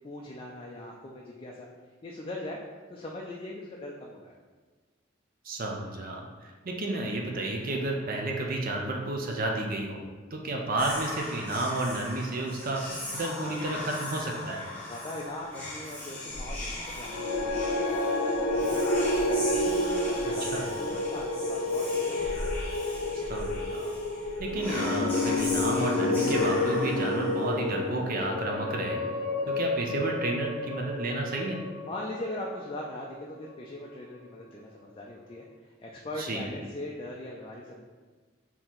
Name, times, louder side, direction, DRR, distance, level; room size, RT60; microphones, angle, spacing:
voice 1, 0.0-1.7 2.0-2.6 2.9-4.4 14.7-19.6 20.0-22.2 31.8-37.8, left 1 dB, 30° left, -1 dB, 0.4 m, -40 dB
voice 2, 5.4-10.0 10.3-14.6 20.4-20.6 23.1-23.9 24.4-29.0 29.5-31.6 36.2-36.5, right 2 dB, 50° right, 1 dB, 0.5 m, -31 dB
Whispering, 10.8-27.9, left 1 dB, 5° left, 1.0 m, -38 dB
sound 1, 17.1-33.4, left 2 dB, 85° left, 0.7 m, -30 dB
3.8 x 2.9 x 4.3 m, 1.4 s
head